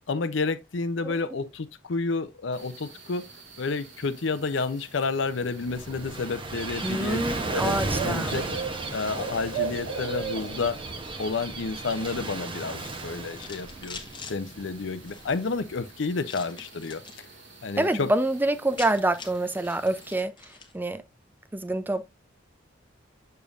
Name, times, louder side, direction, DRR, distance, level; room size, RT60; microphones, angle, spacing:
voice 1, 0.1-3.3 3.6-7.2 7.5-8.4 8.9-10.8 11.2-14.0 14.3-17.3 17.6-18.1, left 4 dB, 70° left, 0.6 m, -30 dB
sound 1, 2.5-20.2, right 4 dB, 75° right, 2.0 m, -41 dB
Gull seagull / Waves surf, 5.3-15.9, right 2 dB, 25° right, 0.9 m, -35 dB
voice 2, 6.8-8.4 17.8-20.3 20.7-21.0 21.5-22.1, right 2 dB, 10° right, 0.4 m, -26 dB
sound 2, 12.6-14.4 15.0-15.5 16.2-17.2 17.6-18.0 18.3-18.4 18.5-20.8, left 5 dB, 25° left, 1.0 m, -44 dB
7.0 x 6.7 x 2.5 m
head